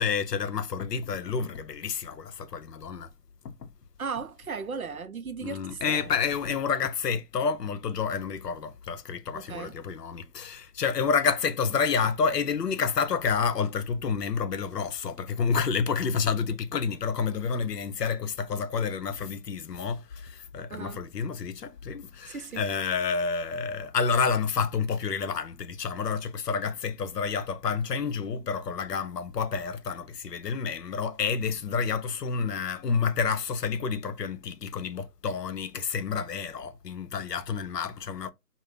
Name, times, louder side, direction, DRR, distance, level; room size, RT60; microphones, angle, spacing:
voice 1, 0.0-3.1 3.4-3.7 5.4-38.3, left 6 dB, 85° left, 0.6 m, -29 dB
voice 2, 4.0-6.1 9.3-9.7 20.7-21.0 22.3-22.6, right 5 dB, 65° right, 0.5 m, -36 dB
2.5 x 2.0 x 3.3 m
figure-of-eight pair, 180°, 47 cm